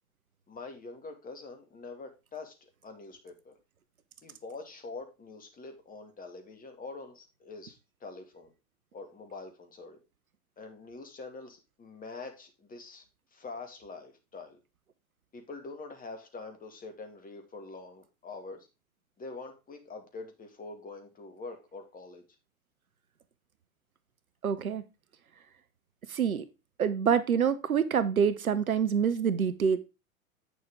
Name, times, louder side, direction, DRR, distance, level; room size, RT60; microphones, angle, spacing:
voice 1, 0.5-3.5 4.2-8.5 8.9-10.0 10.6-13.0 13.3-14.6 15.3-18.7 19.2-22.2, left 3 dB, 20° left, 5 dB, 2.4 m, -45 dB
voice 2, 24.4-24.8 26.1-26.5 26.8-29.8, right 7 dB, 85° right, 14 dB, 1.0 m, -26 dB
8.7 x 6.6 x 3.8 m, 0.27 s
figure-of-eight pair, 95°, 42 cm